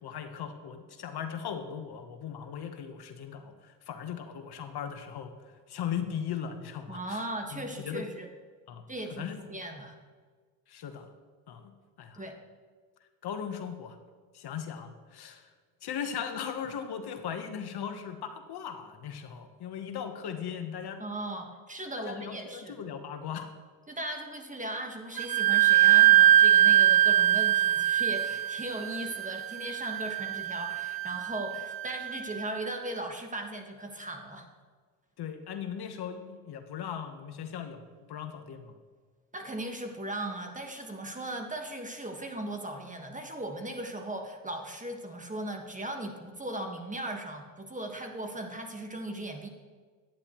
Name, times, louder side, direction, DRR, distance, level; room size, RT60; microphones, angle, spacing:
voice 1, 0.0-7.2 7.5-8.0 8.7-8.8 9.1-9.4 10.7-11.1 11.5-11.7 12.0-12.2 13.2-14.0 14.3-15.5 15.8-21.0 22.0-23.5 35.2-37.8 38.1-38.7, left 8 dB, 55° left, 7 dB, 1.0 m, -38 dB
voice 2, 6.9-8.3 8.9-9.9 12.1-12.4 21.0-22.8 23.9-34.5 39.3-49.5, right 1 dB, 15° right, 4 dB, 1.4 m, -38 dB
Wind instrument woodwind instrument, 25.2-32.6, right 12 dB, 50° right, 0.6 m, -23 dB
10.5 x 9.6 x 3.0 m, 1.5 s
supercardioid pair, 75°, 47 cm